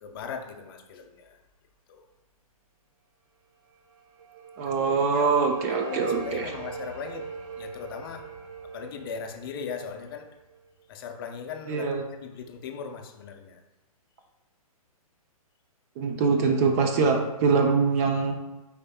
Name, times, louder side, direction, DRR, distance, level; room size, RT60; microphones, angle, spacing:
voice 1, 0.0-1.4 1.9-2.0 4.8-7.3 7.6-8.3 8.7-10.3 10.9-13.6, left 6 dB, 40° left, 5 dB, 0.5 m, -39 dB
sound 1, 3.9-10.9, right 4 dB, 55° right, 0.8 m, -42 dB
voice 2, 4.6-6.5 11.7-12.0 16.0-18.3, right 5 dB, 25° right, 3 dB, 0.4 m, -23 dB
5.2 x 4.3 x 2.2 m, 1.1 s
hypercardioid pair, 145°, 19 cm